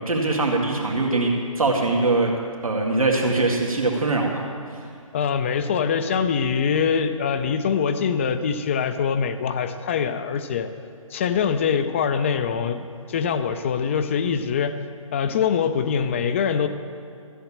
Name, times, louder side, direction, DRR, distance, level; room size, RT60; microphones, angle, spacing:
voice 1, 0.1-2.3 2.6-4.4 4.7-4.8, right 2 dB, 90° right, -1 dB, 2.1 m, -22 dB
voice 2, 5.1-10.7 11.1-14.8 15.1-16.7, left 6 dB, 25° left, 10 dB, 0.5 m, -23 dB
13.5 x 8.6 x 7.3 m, 2.4 s
figure-of-eight pair, 155°, 17 cm